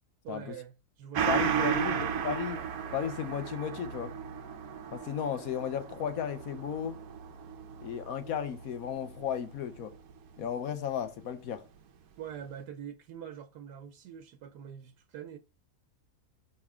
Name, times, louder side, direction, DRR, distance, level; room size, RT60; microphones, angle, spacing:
voice 1, 0.2-2.0 12.2-15.4, right 9 dB, 90° right, 1.3 m, -45 dB
Gong, 1.1-10.1 10.5-10.6, right 8 dB, 70° right, 1.1 m, -35 dB
voice 2, 1.3-2.6 2.9-4.1 4.9-7.0 7.8-9.9 10.4-11.6, left 8 dB, 65° left, 1.2 m, -34 dB
6.7 x 4.9 x 3.6 m
omnidirectional pair, 1.7 m